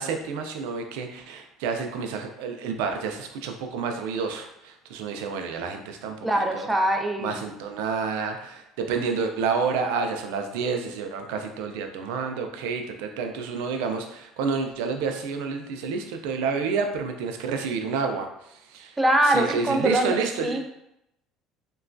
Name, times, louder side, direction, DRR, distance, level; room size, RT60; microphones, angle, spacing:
voice 1, 0.0-6.7 7.2-19.0 19.2-20.6, right 5 dB, 85° right, 5 dB, 0.4 m, -29 dB
voice 2, 6.2-7.4 19.0-20.6, right 1 dB, 10° right, 3 dB, 0.3 m, -23 dB
2.9 x 2.3 x 2.5 m, 0.83 s
supercardioid pair, 110°, 0 cm